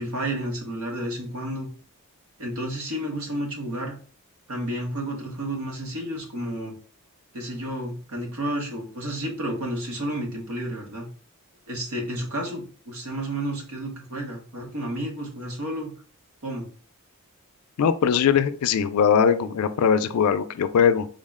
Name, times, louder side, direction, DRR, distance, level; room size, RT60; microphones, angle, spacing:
voice 1, 0.0-1.7 2.4-4.0 4.5-6.8 7.3-11.1 11.7-15.9 16.4-16.7, right 1 dB, 75° right, 0 dB, 1.0 m, -31 dB
voice 2, 17.8-21.1, left 7 dB, 85° left, 11 dB, 0.4 m, -20 dB
3.8 x 2.1 x 3.5 m, 0.42 s
head